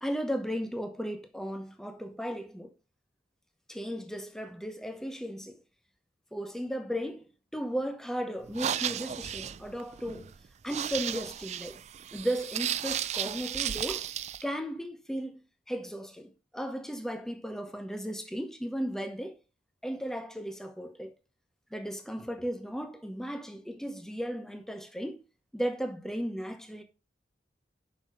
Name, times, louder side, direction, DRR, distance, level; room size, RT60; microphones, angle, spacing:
voice 1, 0.0-2.7 3.7-5.6 6.3-10.3 10.6-11.8 12.1-14.1 14.4-19.4 19.8-21.1 21.7-25.2 25.5-26.8, equal, 5° left, 1.0 m, -35 dB
sound 1, 8.4-14.4, right 10 dB, 40° right, 0.3 m, -34 dB
6.6 x 5.3 x 4.9 m
head